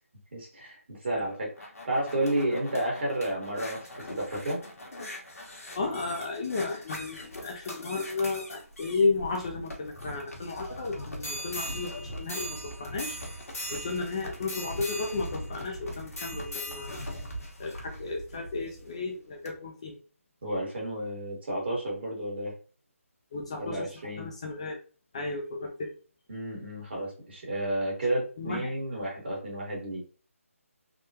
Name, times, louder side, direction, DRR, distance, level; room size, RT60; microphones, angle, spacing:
voice 1, 0.3-4.6 20.4-22.5 23.6-24.3 26.3-30.0, right 1 dB, 45° right, -3 dB, 1.6 m, -31 dB
sound 1, 1.3-18.9 19.5-19.6, equal, 80° left, 1.2 m, -40 dB
voice 2, 5.7-13.2 13.7-17.0 17.6-20.0 23.3-23.9 24.2-24.8 25.1-25.9 28.4-28.7, left 3 dB, 25° left, 1 dB, 0.4 m, -33 dB
3.5 x 2.2 x 2.7 m, 0.38 s
figure-of-eight pair, 165°, 8 cm